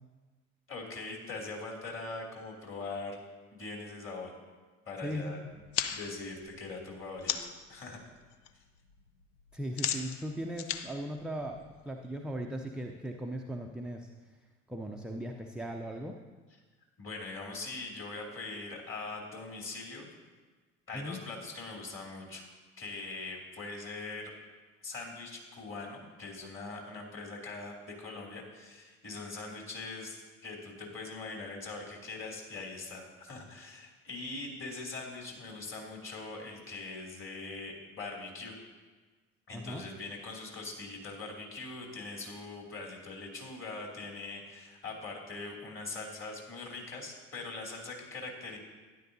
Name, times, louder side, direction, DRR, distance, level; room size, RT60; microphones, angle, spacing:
voice 1, 0.7-3.2 3.5-4.3 4.9-5.4 5.9-8.0 17.0-20.1 20.9-22.4 22.8-24.3 24.8-38.5 39.5-48.6, left 3 dB, 30° left, -1 dB, 2.8 m, -42 dB
voice 2, 5.0-5.6 9.5-11.6 11.8-14.1 14.7-16.2 20.9-21.2 39.5-39.8, equal, ahead, 2 dB, 0.5 m, -38 dB
sound 1, 5.5-7.7 8.1-8.5 8.8-12.0, left 9 dB, 65° left, 0.7 m, -37 dB
12.0 x 10.5 x 2.7 m, 1.4 s
figure-of-eight pair, 65°, 40 cm